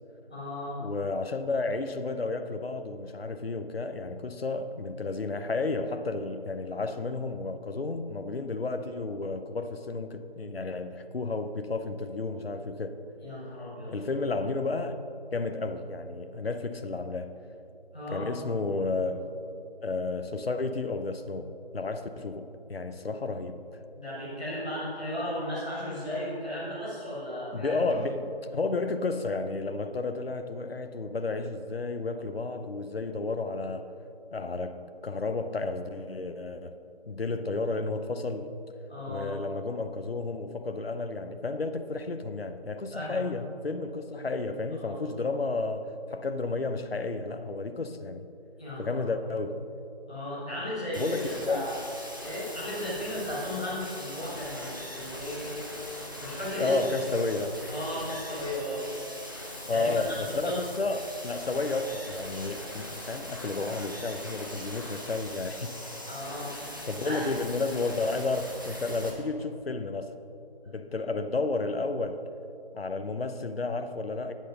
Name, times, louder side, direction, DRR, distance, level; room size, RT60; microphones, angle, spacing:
voice 1, 0.3-0.8 13.2-13.9 17.9-18.4 23.9-27.8 38.9-39.3 42.9-43.2 44.8-45.0 48.6-49.0 50.1-51.7 52.2-55.5 56.2-56.7 57.7-58.9 59.7-59.9 60.4-60.6 66.0-66.6 66.9-67.2, left 1 dB, 5° left, -15 dB, 1.5 m, -35 dB
voice 2, 0.8-13.0 13.9-15.0 15.3-17.3 18.1-19.2 19.8-23.6 27.5-33.9 34.3-36.8 37.1-38.5 39.1-48.3 48.8-49.6 50.9-51.7 56.6-57.6 59.7-66.1 66.9-70.1 70.7-72.2 72.7-74.3, left 3 dB, 70° left, 9 dB, 0.8 m, -32 dB
sound 1, 50.9-69.1, equal, 20° right, 0.9 m, -41 dB
9.7 x 9.4 x 5.2 m, 2.7 s
figure-of-eight pair, 170°, 31 cm